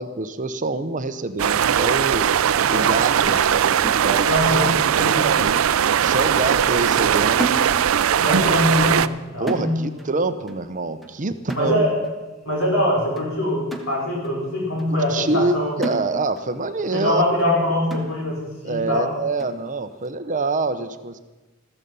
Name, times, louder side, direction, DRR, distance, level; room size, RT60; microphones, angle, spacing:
voice 1, 0.0-2.3 2.7-4.3 5.0-5.5 6.0-7.6 9.4-11.8 14.9-17.2 18.6-21.2, right 3 dB, 40° right, 11 dB, 0.8 m, -26 dB
sound 1, 1.4-9.1, right 8 dB, 85° right, 0.4 m, -19 dB
voice 2, 2.5-2.9 4.2-4.7 5.0-5.2 8.2-9.8 11.5-12.0 12.4-15.8 16.9-19.1, left 1 dB, 80° left, -2 dB, 5.2 m, -23 dB
sound 2, 3.3-4.6 4.9-5.1 5.4-6.1 6.4-6.6 6.9-8.1 8.4-8.7 9.0-9.2 9.5-10.1 10.5-10.7 11.0-11.2 11.5-12.1 12.6-12.7 13.2-13.3 13.7-14.4 14.8-14.9 15.3-15.5 15.8-16.5 16.9-17.0 17.4-17.5 17.9-18.4 18.9-19.0 19.4-19.6, right 1 dB, ahead, 1.3 m, -34 dB
14.5 x 14.0 x 5.5 m, 1.1 s
head